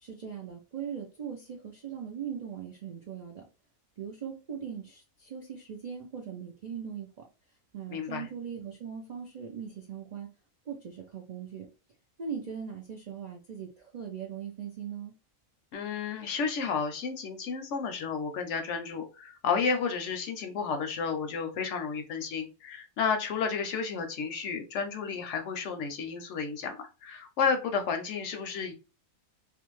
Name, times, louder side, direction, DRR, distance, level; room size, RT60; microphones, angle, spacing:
voice 1, 0.0-3.4 4.0-7.1 7.7-10.3 10.7-11.7 12.2-15.1, right 7 dB, 80° right, 0 dB, 0.3 m, -40 dB
voice 2, 7.9-8.3 15.7-28.7, left 5 dB, 65° left, 6 dB, 0.8 m, -32 dB
2.5 x 2.3 x 3.0 m, 0.31 s
omnidirectional pair, 1.5 m